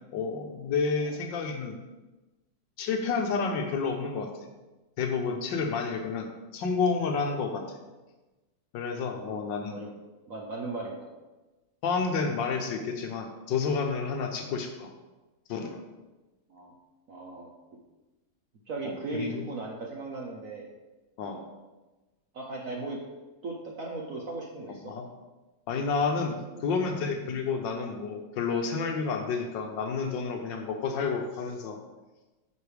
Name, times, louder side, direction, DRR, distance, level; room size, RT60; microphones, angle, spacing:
voice 1, 0.1-1.8 2.8-4.3 5.0-6.3 6.5-7.6 8.7-9.8 11.8-14.9 15.5-15.8 18.8-19.4 21.2-21.4 24.8-25.0 25.7-31.8, left 5 dB, 70° left, 4 dB, 1.4 m, -30 dB
voice 2, 9.2-9.9 10.3-11.1 16.5-16.7 17.1-17.5 18.7-20.7 21.3-21.4 22.3-23.0 23.4-24.8 26.7-26.9 27.5-27.6, right 2 dB, 55° right, -1 dB, 1.0 m, -37 dB
9.3 x 5.4 x 3.4 m, 1.1 s
omnidirectional pair, 2.2 m